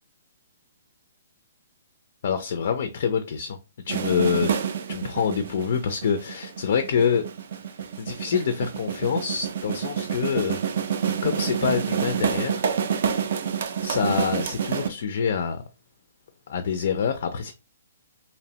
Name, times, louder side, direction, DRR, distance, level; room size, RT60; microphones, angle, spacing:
voice 1, 2.2-3.6 3.9-4.5 4.9-7.2 8.0-10.8 11.2-12.7 13.8-15.6 16.5-17.5, left 7 dB, 50° left, 0.3 m, -26 dB
sound 1, 3.9-14.9, right 7 dB, 55° right, 0.3 m, -28 dB
2.8 x 2.0 x 2.7 m
hypercardioid pair, 165°, 0 cm